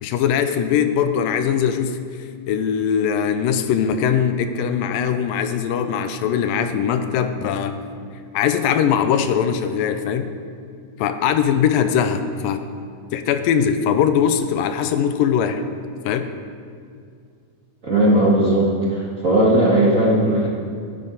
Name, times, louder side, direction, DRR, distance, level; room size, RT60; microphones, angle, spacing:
voice 1, 0.0-2.0 2.5-7.8 8.3-10.3 11.0-12.6 13.1-15.6 16.1-16.3, left 8 dB, 90° left, 9 dB, 2.4 m, -21 dB
voice 2, 17.8-20.5, right 1 dB, 30° right, -6 dB, 1.6 m, -17 dB
17.5 x 10.5 x 4.0 m, 2.3 s
omnidirectional pair, 3.9 m